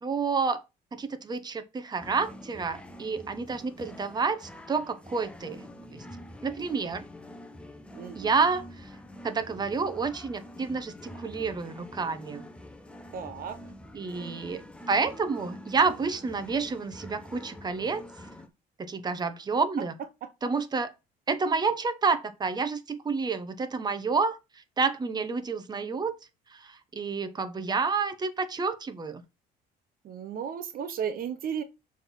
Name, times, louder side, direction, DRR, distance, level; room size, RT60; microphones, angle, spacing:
voice 1, 0.0-0.6 0.9-5.6 5.9-6.0 6.4-7.0 8.1-8.7 9.2-12.4 13.9-14.6 14.9-18.0 18.8-19.9 20.4-20.9 21.3-24.4 24.8-26.1 26.5-29.2, right 4 dB, 25° right, 1.1 m, -29 dB
sound 1, 2.0-18.5, left 1 dB, 5° left, 1.1 m, -46 dB
voice 2, 7.9-8.3 13.1-13.7 14.1-14.5 20.2-20.3 30.0-31.6, right 8 dB, 60° right, 0.9 m, -35 dB
6.8 x 3.7 x 5.8 m
cardioid pair, 110°, 17 cm